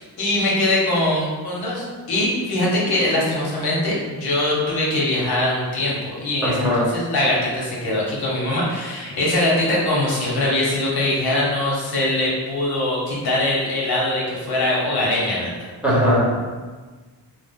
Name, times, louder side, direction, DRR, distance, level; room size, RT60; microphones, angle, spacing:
voice 1, 0.0-15.7, left 1 dB, 70° left, -5 dB, 1.1 m, -22 dB
voice 2, 6.4-6.9 15.8-16.4, equal, 5° right, -8 dB, 1.0 m, -19 dB
3.2 x 2.1 x 3.6 m, 1.4 s
cardioid pair, 100°, 39 cm